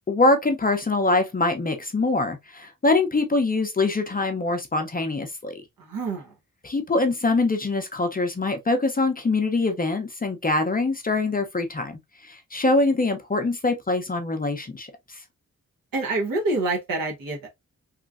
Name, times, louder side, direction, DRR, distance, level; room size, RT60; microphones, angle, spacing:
voice 1, 0.1-5.6 6.6-15.2, left 2 dB, 25° left, 0.5 m, -24 dB
voice 2, 5.8-6.3 15.9-17.5, right 2 dB, 80° right, 1.0 m, -27 dB
3.0 x 2.4 x 2.3 m
wide cardioid pair, 110°, 34 cm